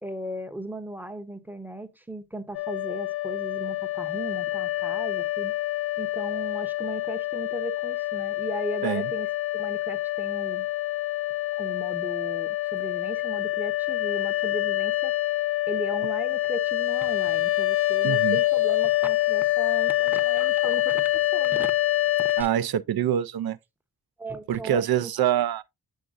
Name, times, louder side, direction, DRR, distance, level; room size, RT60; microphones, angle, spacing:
voice 1, 0.0-5.5 6.0-9.3 9.5-10.7 11.6-15.1 15.7-21.7 22.2-22.5 24.2-25.1, right 1 dB, 5° right, 0.7 m, -37 dB
sound 1, 2.5-22.4, left 16 dB, 85° left, 0.8 m, -26 dB
voice 2, 18.0-18.4 22.4-23.6 24.5-25.6, right 10 dB, 75° right, 0.5 m, -25 dB
7.9 x 7.3 x 2.4 m
wide cardioid pair, 155°, 37 cm